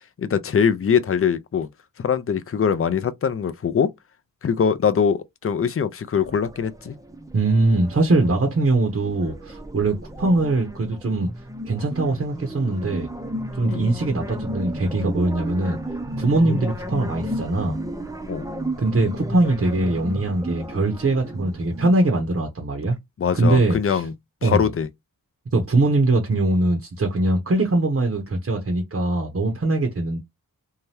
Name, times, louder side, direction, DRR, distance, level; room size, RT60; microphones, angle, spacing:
voice 1, 0.2-1.7 2.0-3.9 4.4-6.9 13.7-13.8 18.3-18.5 23.2-24.1 24.4-24.9, left 7 dB, 40° left, 0.4 m, -22 dB
sound 1, 6.2-22.1, equal, 10° right, 0.5 m, -33 dB
voice 2, 7.3-11.3 11.7-13.1 13.5-15.8 16.2-17.8 18.8-23.0 23.3-24.0 24.4-24.7 25.5-30.2, right 2 dB, 40° right, 0.7 m, -22 dB
2.8 x 2.2 x 3.2 m
wide cardioid pair, 70°, 35 cm